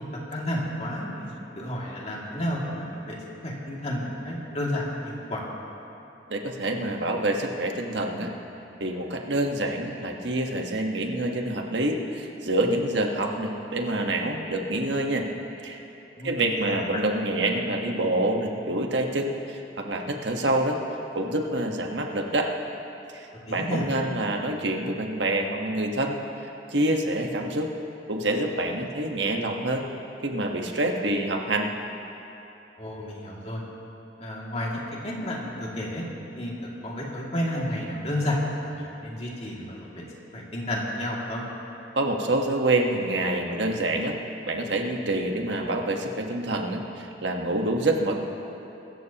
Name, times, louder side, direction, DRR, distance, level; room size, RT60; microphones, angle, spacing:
voice 1, 0.3-5.4 16.2-16.3 16.7-17.0 23.5-23.9 32.8-33.6 34.2-36.0 36.4-40.0 40.3-41.4, left 1 dB, 35° left, -4 dB, 2.5 m, -31 dB
voice 2, 6.3-8.3 8.8-15.2 15.6-15.8 16.2-20.8 21.1-22.5 23.1-26.2 26.7-27.7 28.1-29.8 30.2-31.7 42.0-44.2 44.5-48.1, right 1 dB, 85° right, 2 dB, 1.4 m, -27 dB
23.5 x 14.0 x 3.0 m, 2.9 s
head